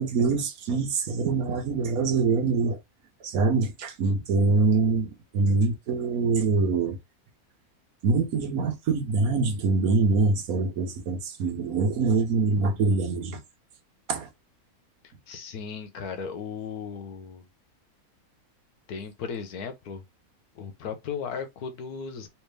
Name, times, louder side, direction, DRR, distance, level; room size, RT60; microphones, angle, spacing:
voice 1, 0.0-2.8 3.2-7.0 8.0-13.4 14.1-14.3, right 4 dB, 75° right, 1.3 m, -24 dB
voice 2, 15.0-17.5 18.9-20.0 20.5-22.3, left 6 dB, 85° left, 1.4 m, -36 dB
3.3 x 3.1 x 3.3 m
omnidirectional pair, 1.6 m